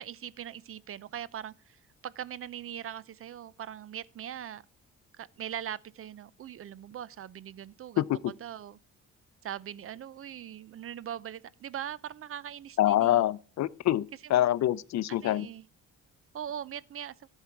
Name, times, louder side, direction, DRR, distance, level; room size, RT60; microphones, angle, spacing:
voice 1, 0.0-4.6 5.2-8.8 9.4-13.3 14.2-14.5 15.1-15.7 16.3-17.1, right 10 dB, 50° right, 0.5 m, -41 dB
voice 2, 12.8-15.5, left 13 dB, 65° left, 0.5 m, -26 dB
12.0 x 7.3 x 4.5 m
cardioid pair, 90°, 30 cm